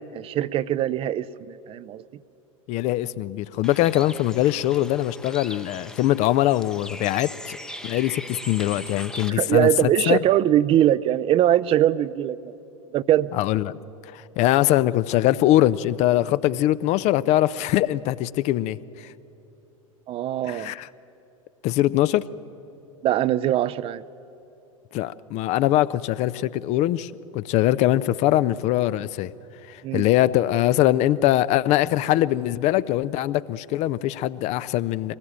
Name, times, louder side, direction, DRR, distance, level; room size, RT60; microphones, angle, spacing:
voice 1, 0.1-2.0 9.3-12.5 12.9-13.3 20.1-20.7 23.0-24.0 29.8-30.1, right 12 dB, 35° right, 15 dB, 0.5 m, -22 dB
voice 2, 2.7-7.6 7.8-10.2 13.3-13.7 14.1-19.1 20.4-20.9 21.6-22.2 24.9-29.3 29.7-35.1, left 14 dB, 40° left, 17 dB, 0.6 m, -22 dB
Bird, 3.6-9.3, left 1 dB, 5° left, 0.8 m, -39 dB
23.0 x 19.0 x 8.8 m, 3.0 s
figure-of-eight pair, 85°, 17 cm